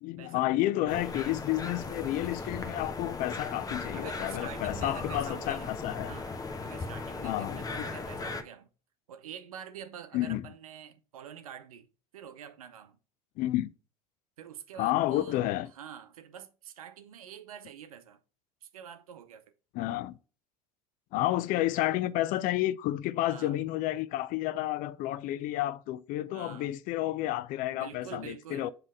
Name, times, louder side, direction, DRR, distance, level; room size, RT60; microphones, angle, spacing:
voice 1, 0.0-6.1 7.2-7.9 10.1-10.4 13.4-13.7 14.8-15.7 19.7-20.2 21.1-28.7, left 15 dB, 50° left, 0.5 m, -31 dB
sound 1, 0.9-8.4, left 3 dB, 20° left, 1.0 m, -38 dB
voice 2, 3.9-5.7 6.1-6.3 6.6-8.7 9.1-13.0 14.4-15.4 15.7-18.2 18.6-19.4 23.3-23.7 26.3-26.7 27.7-28.7, right 8 dB, 75° right, 0.8 m, -46 dB
7.4 x 3.2 x 4.7 m
figure-of-eight pair, 70°, 18 cm